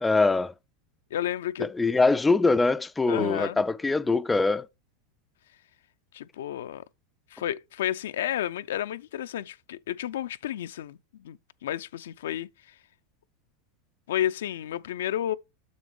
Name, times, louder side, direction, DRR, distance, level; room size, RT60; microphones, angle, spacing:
voice 1, 0.0-0.5 1.6-4.7, left 3 dB, 10° left, 0.3 m, -23 dB
voice 2, 1.1-1.7 3.1-3.6 6.1-6.8 7.3-11.4 11.6-12.5 14.1-15.3, left 11 dB, 85° left, 0.4 m, -31 dB
6.9 x 6.3 x 3.2 m
supercardioid pair, 130°, 0 cm